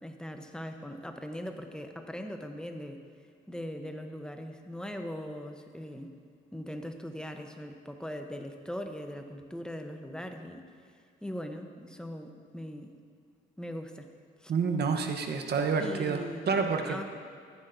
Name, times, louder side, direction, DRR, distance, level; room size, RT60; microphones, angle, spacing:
voice 1, 0.0-3.0 3.5-6.1 6.5-10.6 11.2-13.0 13.6-14.1 14.4-14.5 15.8-17.0, equal, 5° left, 5 dB, 0.8 m, -40 dB
voice 2, 14.5-16.2 16.5-17.0, right 5 dB, 55° right, 4 dB, 1.0 m, -28 dB
14.0 x 9.9 x 2.7 m, 2.2 s
cardioid pair, 90°, 20 cm